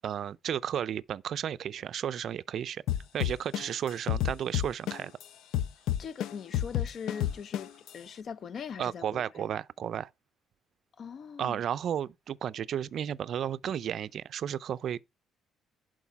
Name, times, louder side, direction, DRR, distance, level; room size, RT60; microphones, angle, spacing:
voice 1, 0.0-2.8 3.1-5.1 8.8-10.1 11.4-15.0, right 9 dB, 50° right, 0.5 m, -33 dB
sound 1, 2.9-5.2 5.5-7.9, left 11 dB, 80° left, 0.7 m, -29 dB
voice 2, 6.0-9.2 11.0-11.6, left 6 dB, 45° left, 0.7 m, -41 dB
11.0 x 4.8 x 4.7 m
cardioid pair, 155°, 0 cm